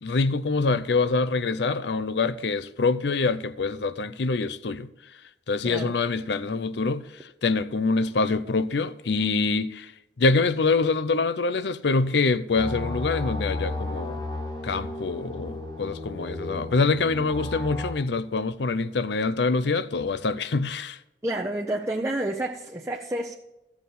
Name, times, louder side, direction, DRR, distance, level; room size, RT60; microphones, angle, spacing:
voice 1, 0.0-4.9 5.5-9.9 10.2-14.2 14.6-21.0, left 3 dB, 70° left, 0.6 m, -25 dB
voice 2, 5.6-6.0 21.2-23.4, right 1 dB, 15° right, 0.6 m, -29 dB
sound 1, 12.5-17.9, left 2 dB, 25° left, 1.3 m, -33 dB
15.0 x 7.2 x 4.2 m
head